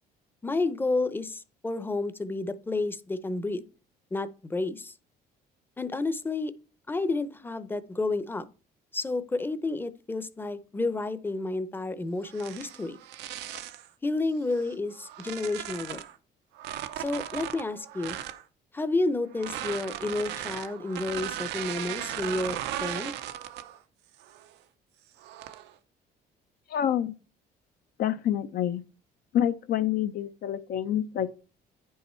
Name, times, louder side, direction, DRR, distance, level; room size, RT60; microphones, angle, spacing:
voice 1, 0.4-3.6 4.1-4.9 5.8-6.5 6.9-8.5 8.9-13.0 14.0-16.0 17.0-18.2 18.7-23.1, left 2 dB, 10° left, 0.7 m, -30 dB
sound 1, 12.3-13.9 14.5-16.1 16.6-18.4 19.3-23.8 24.2-24.5 25.2-25.7, right 12 dB, 90° right, 0.7 m, -37 dB
voice 2, 26.7-27.1 28.0-28.8 29.3-31.3, left 10 dB, 60° left, 0.6 m, -27 dB
9.4 x 5.6 x 4.4 m
cardioid pair, 110°, 17 cm